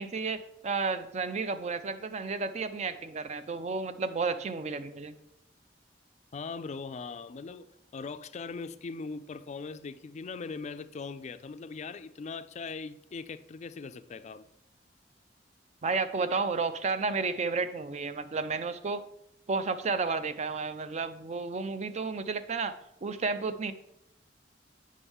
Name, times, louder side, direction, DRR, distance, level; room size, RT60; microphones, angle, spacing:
voice 1, 0.0-5.1 15.8-19.0 19.5-22.7 23.0-23.7, right 4 dB, 40° right, 0.5 m, -32 dB
voice 2, 6.3-7.7 7.9-14.5, left 4 dB, 40° left, 0.4 m, -40 dB
8.4 x 6.2 x 3.5 m
head